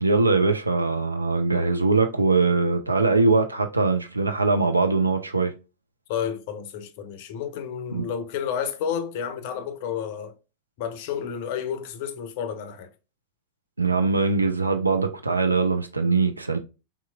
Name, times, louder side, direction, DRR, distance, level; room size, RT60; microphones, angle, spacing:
voice 1, 0.0-5.5 7.9-8.1 13.8-16.6, right 3 dB, 80° right, 0.4 m, -22 dB
voice 2, 6.1-10.3 10.8-12.9, left 8 dB, 50° left, 0.5 m, -31 dB
3.5 x 2.9 x 2.2 m
figure-of-eight pair, 90°, 0 cm